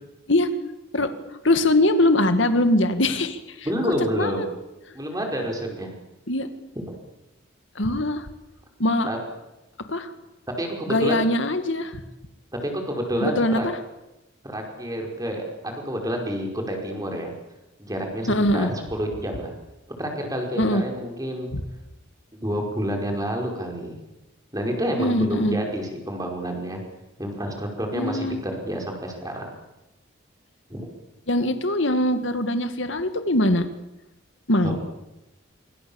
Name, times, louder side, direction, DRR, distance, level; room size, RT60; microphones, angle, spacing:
voice 1, 1.4-3.7 4.1-4.5 6.3-6.5 7.8-8.3 8.8-9.1 9.9-10.1 10.9-12.0 13.2-13.6 18.3-18.7 20.6-20.8 21.5-21.6 25.0-25.6 27.9-28.4 31.3-33.7 34.5-34.8, left 1 dB, 65° left, 9 dB, 2.2 m, -22 dB
voice 2, 3.7-4.5 4.9-5.9 9.1-9.2 10.6-11.2 12.6-13.7 14.4-17.3 17.8-19.5 20.0-21.5 22.3-24.0 24.5-26.8 27.2-29.5 30.7-30.9 34.6-34.8, equal, 20° right, 2 dB, 5.2 m, -29 dB
26.0 x 24.5 x 7.2 m, 0.98 s
head